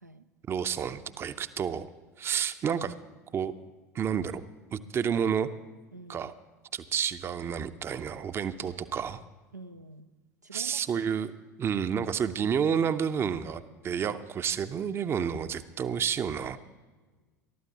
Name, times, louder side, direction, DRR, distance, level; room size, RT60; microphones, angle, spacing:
voice 1, 0.5-1.9 2.2-2.9 3.3-3.5 3.9-4.4 4.7-5.5 6.1-6.3 6.7-9.2 10.5-11.3 11.6-16.6, right 7 dB, 30° right, 12 dB, 0.6 m, -30 dB
voice 2, 5.9-6.3 9.5-10.1 10.4-10.8 11.2-11.3, right 3 dB, 90° right, 6 dB, 0.5 m, -46 dB
23.0 x 12.5 x 2.8 m, 1.3 s
figure-of-eight pair, 75°, 9 cm